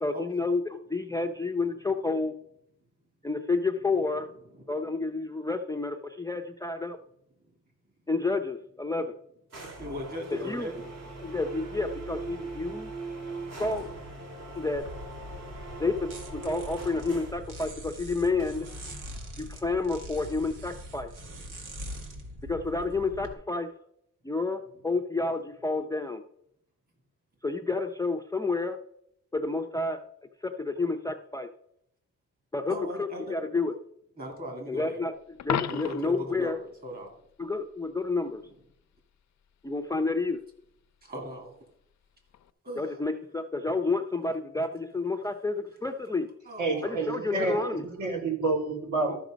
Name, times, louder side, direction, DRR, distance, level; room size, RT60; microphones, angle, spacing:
voice 1, 0.0-2.3 3.2-4.3 4.7-7.0 8.1-9.1 10.3-10.7 11.2-12.9 13.6-13.9 14.6-14.8 15.8-18.7 19.4-21.1 22.4-23.7 24.2-26.2 27.4-28.8 29.3-30.0 30.4-31.5 32.5-33.8 34.7-35.1 35.4-36.6 37.4-38.4 39.6-40.4 42.8-46.3 46.8-47.9 49.1-49.2, left 3 dB, 10° left, 5 dB, 0.5 m, -30 dB
sound 1, 9.5-17.5 18.4-19.3, right 3 dB, 55° right, 2.9 m, -41 dB
voice 2, 9.8-11.4 22.1-22.2 32.7-33.3 34.2-35.0 35.7-37.2 38.4-38.5 41.0-41.5 42.6-43.0 46.4-47.1, equal, 30° right, 1 dB, 2.8 m, -39 dB
sound 2, 14.7-23.3, equal, 90° right, 2.1 m, -42 dB
Coin (dropping), 35.4-36.3 42.3-42.5, left 9 dB, 65° left, 0.6 m, -32 dB
voice 3, 46.6-47.6 48.0-49.2, right 3 dB, 70° right, 1 dB, 3.3 m, -28 dB
13.0 x 5.9 x 5.1 m, 0.74 s
wide cardioid pair, 165°, 31 cm